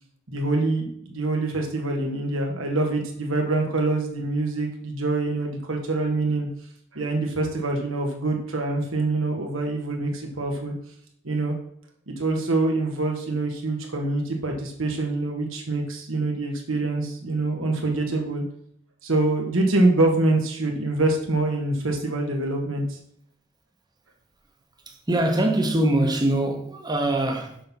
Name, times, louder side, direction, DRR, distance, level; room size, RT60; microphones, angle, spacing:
voice 1, 0.3-6.5 6.9-10.7 11.2-11.5 12.1-18.4 19.0-23.0, right 2 dB, 80° right, 1.5 m, -25 dB
voice 2, 24.9-27.6, right 1 dB, 20° right, 1.0 m, -23 dB
6.8 x 5.5 x 5.9 m
head